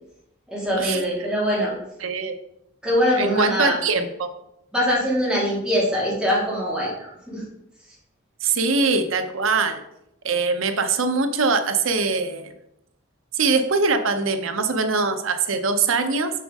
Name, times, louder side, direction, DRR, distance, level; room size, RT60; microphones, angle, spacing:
voice 1, 0.5-1.7 2.8-3.7 4.7-7.4, equal, 5° right, -6 dB, 2.0 m, -23 dB
voice 2, 2.0-2.4 3.2-4.3 8.4-9.8 10.2-12.5 13.3-16.3, right 4 dB, 80° right, 7 dB, 0.7 m, -22 dB
6.2 x 5.7 x 3.5 m, 0.81 s
head